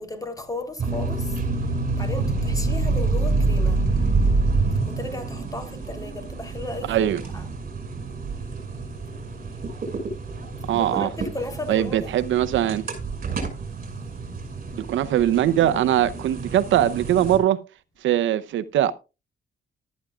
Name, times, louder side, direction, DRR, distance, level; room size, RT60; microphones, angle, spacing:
voice 1, 0.0-7.1 7.3-7.5 8.3-8.8 9.1-12.1 13.7-14.0 14.3-14.8, left 2 dB, 20° left, 3.4 m, -37 dB
sound 1, 0.8-17.4, right 3 dB, 45° right, 5.8 m, -27 dB
voice 2, 6.9-7.2 10.7-11.1 11.7-12.8 14.8-17.6 18.0-18.9, right 11 dB, 75° right, 0.7 m, -21 dB
14.0 x 12.5 x 2.4 m
cardioid pair, 90°, 20 cm